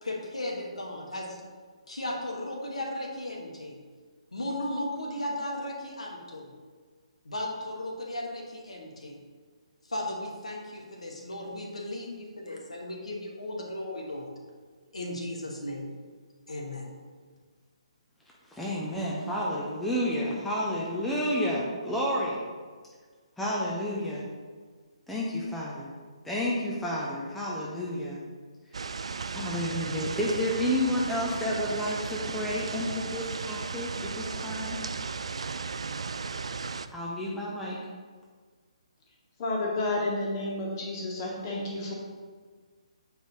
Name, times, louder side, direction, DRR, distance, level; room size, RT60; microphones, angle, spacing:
voice 1, 0.0-1.4 1.9-3.8 4.3-6.5 7.2-9.2 9.8-14.3 14.9-15.9 16.5-17.0, left 1 dB, 70° left, 0 dB, 1.4 m, -36 dB
voice 2, 18.5-22.4 23.4-24.3 25.1-26.0 26.2-28.2 29.3-34.8 36.9-37.8, equal, 5° left, -5 dB, 0.7 m, -30 dB
sound 1, 28.7-36.9, right 4 dB, 60° right, 0.3 m, -35 dB
voice 3, 39.4-41.9, left 2 dB, 30° left, -2 dB, 1.7 m, -31 dB
7.8 x 4.8 x 4.1 m, 1.5 s
figure-of-eight pair, 135°, 3 cm